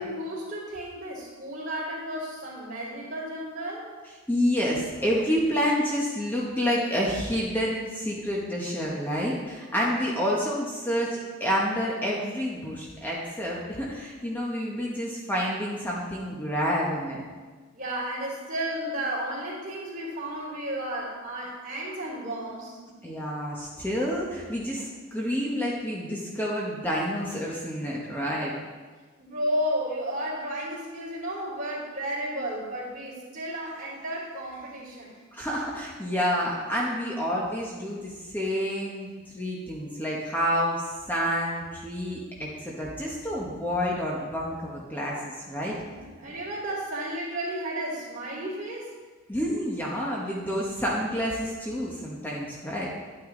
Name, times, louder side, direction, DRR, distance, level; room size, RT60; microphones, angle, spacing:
voice 1, 0.0-3.9 17.7-22.8 29.2-35.2 45.9-48.9, right 1 dB, 40° right, -8 dB, 3.1 m, -33 dB
voice 2, 4.3-17.2 23.0-28.5 35.3-45.7 49.3-52.9, equal, 10° left, -4 dB, 1.2 m, -29 dB
11.0 x 9.3 x 3.9 m, 1.4 s
head